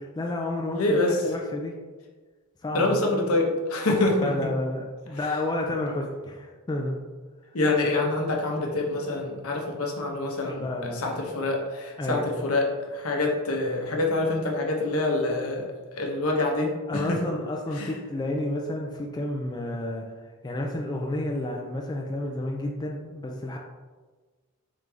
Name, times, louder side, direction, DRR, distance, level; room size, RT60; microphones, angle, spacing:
voice 1, 0.0-1.7 2.6-3.2 4.2-7.0 10.4-11.2 12.0-12.3 16.9-20.1 20.4-23.6, left 1 dB, 20° left, 0 dB, 0.3 m, -31 dB
voice 2, 0.7-1.2 2.7-4.3 7.5-15.6 15.9-17.2 17.8-17.9, left 2 dB, 70° left, 0 dB, 0.8 m, -26 dB
3.7 x 3.4 x 3.3 m, 1.3 s
head